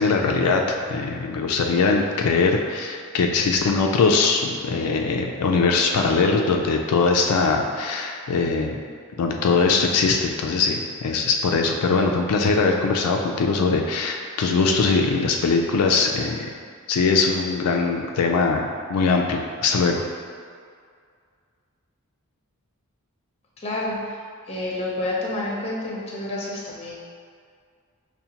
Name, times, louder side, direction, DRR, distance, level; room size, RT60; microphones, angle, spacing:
voice 1, 0.0-8.8 9.2-16.5 16.9-20.0, left 4 dB, 90° left, 2 dB, 0.3 m, -21 dB
voice 2, 23.6-24.0 24.5-27.0, left 2 dB, 25° left, -4 dB, 0.6 m, -29 dB
5.5 x 2.2 x 2.8 m, 2.1 s
head